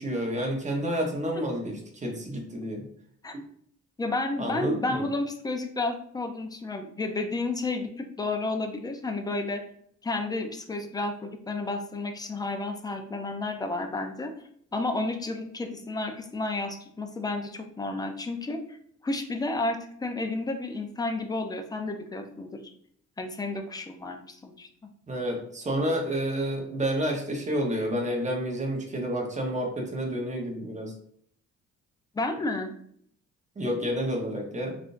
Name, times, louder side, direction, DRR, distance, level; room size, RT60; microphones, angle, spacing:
voice 1, 0.0-2.9 4.4-5.1 25.1-30.9 33.6-34.8, equal, 25° right, 1 dB, 0.9 m, -30 dB
voice 2, 4.0-9.6 10.0-14.3 14.7-18.8 19.0-22.6 23.2-24.7 32.1-32.7, left 2 dB, 15° left, 5 dB, 0.5 m, -31 dB
3.6 x 2.5 x 2.5 m, 0.65 s
cardioid pair, 90°, 30 cm